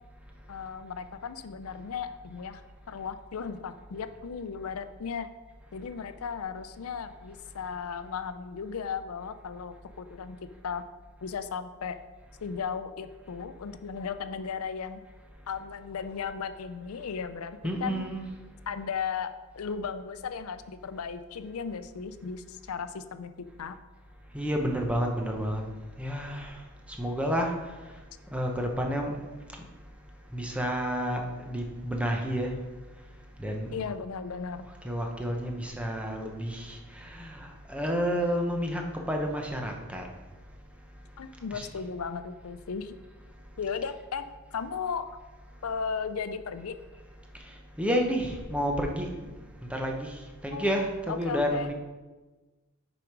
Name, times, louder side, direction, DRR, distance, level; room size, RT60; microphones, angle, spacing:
voice 1, 0.5-2.6 2.9-5.3 5.7-10.4 10.6-10.8 11.2-12.0 12.4-15.0 15.5-18.1 18.7-23.8 33.7-34.7 41.2-43.0 43.6-44.2 44.5-45.2 45.6-46.8 50.5-51.7, left 6 dB, 80° left, 11 dB, 0.5 m, -36 dB
voice 2, 17.6-18.2 24.3-25.6 26.0-26.6 26.9-27.5 28.3-29.2 29.5-29.7 30.3-32.5 33.4-33.8 34.8-40.1 41.5-41.7 47.8-49.3 49.6-51.7, equal, 5° right, 2 dB, 0.8 m, -30 dB
6.9 x 5.0 x 4.7 m, 1.2 s
head